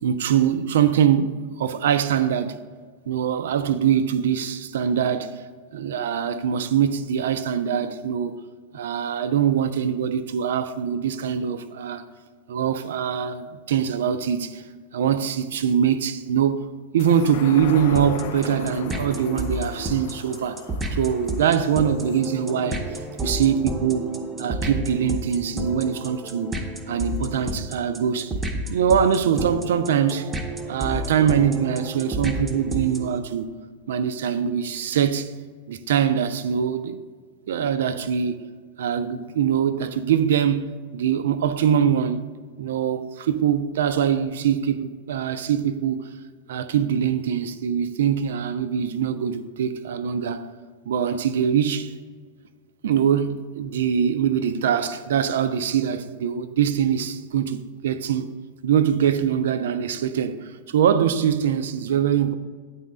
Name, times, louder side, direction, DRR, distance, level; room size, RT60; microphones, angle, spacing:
voice 1, 0.0-2.6 3.1-5.4 5.7-8.4 8.7-12.1 12.5-14.6 14.9-16.6 16.9-22.8 23.2-24.0 24.4-26.5 26.9-28.3 28.7-30.3 30.7-33.5 33.9-35.3 35.7-37.0 37.5-38.5 38.8-42.2 42.6-46.0 46.5-50.5 50.9-51.9 52.8-58.3 58.6-62.4, right 8 dB, 60° right, 0.4 m, -23 dB
sound 1, 17.0-23.8 24.2-24.3, left 8 dB, 50° left, 0.3 m, -39 dB
sound 2, 18.0-33.2, right 1 dB, 15° right, 0.8 m, -31 dB
9.1 x 4.1 x 4.8 m
figure-of-eight pair, 90°, 0 cm